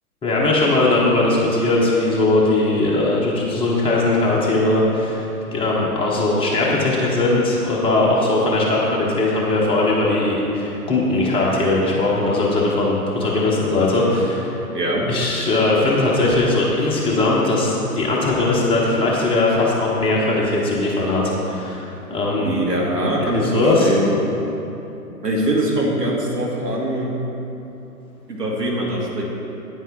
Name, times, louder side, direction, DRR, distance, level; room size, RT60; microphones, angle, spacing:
voice 1, 0.2-14.5 15.1-22.6 23.3-23.9, left 2 dB, 10° left, -4 dB, 1.0 m, -19 dB
voice 2, 14.7-15.1 22.4-24.2 25.2-27.1 28.3-29.2, right 1 dB, 80° right, -3 dB, 2.3 m, -22 dB
9.5 x 9.1 x 4.5 m, 3.0 s
figure-of-eight pair, 120°, 47 cm